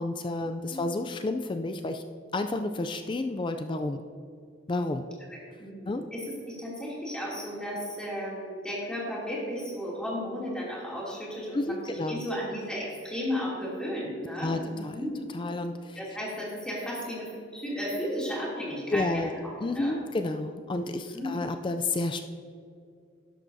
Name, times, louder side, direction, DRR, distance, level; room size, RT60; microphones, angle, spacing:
voice 1, 0.0-2.0 2.3-4.0 4.7-5.0 5.9-6.0 11.5-12.2 14.4-15.0 15.3-16.0 18.9-19.3 19.6-22.2, left 2 dB, 25° left, 8 dB, 0.4 m, -30 dB
voice 2, 5.3-15.2 15.9-20.0 20.7-21.3, equal, 5° left, -6 dB, 2.7 m, -34 dB
12.5 x 11.0 x 2.7 m, 2.4 s
head